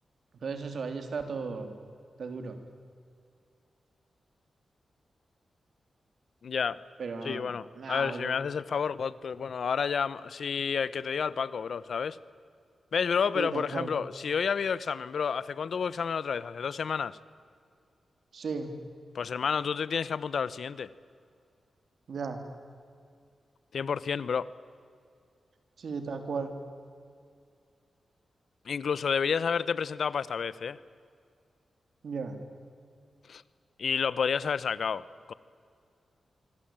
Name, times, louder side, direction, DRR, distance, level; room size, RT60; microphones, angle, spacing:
voice 1, 0.4-1.7 2.2-2.6 7.0-8.4 13.3-13.9 18.3-18.7 22.1-22.4 25.8-26.6 32.0-32.4, right 4 dB, 70° right, 7 dB, 3.5 m, -35 dB
voice 2, 6.4-6.8 7.2-12.2 12.9-17.2 19.1-20.9 23.7-24.5 28.7-30.8 33.3-33.4 33.8-35.0 35.3-35.4, left 6 dB, 70° left, 18 dB, 0.9 m, -30 dB
25.5 x 24.5 x 9.0 m, 2.3 s
cardioid pair, 85°, 0 cm